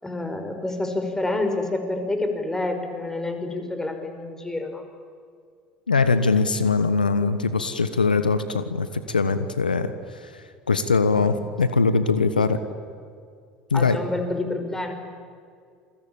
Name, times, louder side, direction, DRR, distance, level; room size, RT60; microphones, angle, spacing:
voice 1, 0.0-4.8 11.1-11.4 13.7-14.9, left 2 dB, 10° left, 6 dB, 5.3 m, -28 dB
voice 2, 5.9-9.9 10.2-12.6 13.7-14.0, left 4 dB, 85° left, 12 dB, 1.2 m, -22 dB
28.0 x 21.5 x 8.9 m, 2.2 s
figure-of-eight pair, 70°, 5 cm